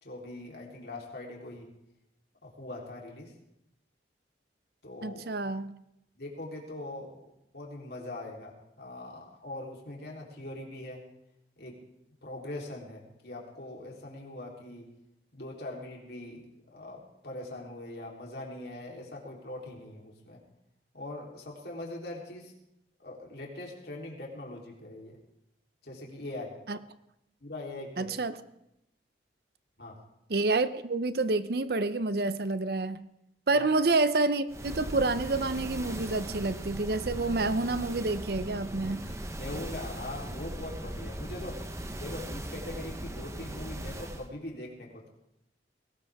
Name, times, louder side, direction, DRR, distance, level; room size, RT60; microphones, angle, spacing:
voice 1, 0.0-1.7 2.4-3.3 4.8-5.2 6.2-7.2 7.5-11.0 11.6-11.8 12.2-14.9 15.3-16.4 16.7-20.4 20.9-22.5 23.0-25.2 25.8-26.5 27.4-28.2 29.8-30.0 33.5-33.7 39.4-41.6 42.0-45.1, left 1 dB, 60° left, -1 dB, 3.5 m, -42 dB
voice 2, 5.0-5.7 26.7-26.8 28.0-28.3 30.3-33.0 33.5-39.1, right 3 dB, 55° right, 13 dB, 0.7 m, -28 dB
sound 1, 34.5-44.3, right 1 dB, 15° right, 0.9 m, -39 dB
20.0 x 18.0 x 3.6 m, 0.83 s
head